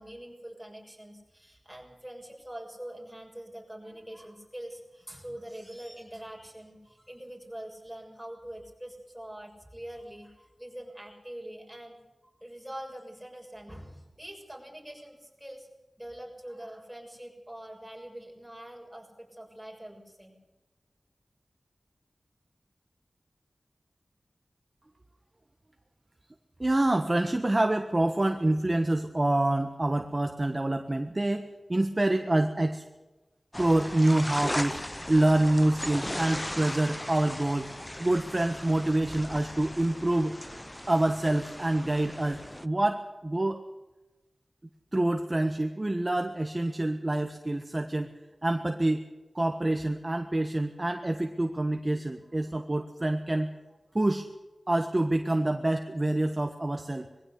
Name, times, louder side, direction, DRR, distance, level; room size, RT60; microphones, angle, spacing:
voice 1, 0.0-12.0 12.4-15.7 16.0-20.4, right 1 dB, 5° right, 0 dB, 6.7 m, -44 dB
voice 2, 26.6-32.8 33.6-34.8 35.1-37.7 38.0-40.3 40.9-43.6 44.9-48.1 48.4-49.0 49.3-53.5 53.9-54.3 54.7-57.1, right 1 dB, 30° right, 5 dB, 1.4 m, -26 dB
sound 1, 33.5-42.7, left 1 dB, 15° left, 0.7 m, -38 dB
21.5 x 15.5 x 8.4 m, 1.1 s
wide cardioid pair, 55°, 0 cm